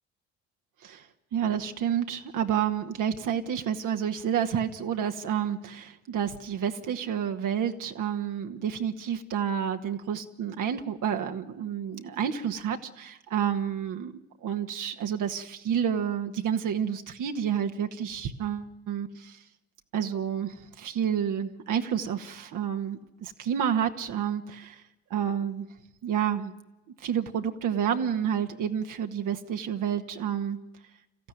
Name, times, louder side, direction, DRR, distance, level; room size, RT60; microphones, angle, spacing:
voice 1, 1.3-19.4 19.9-24.8 25.1-25.7 26.0-26.5 27.0-30.6, right 8 dB, 50° right, 1.7 m, -29 dB
27.0 x 15.0 x 9.4 m
figure-of-eight pair, 50°, 40 cm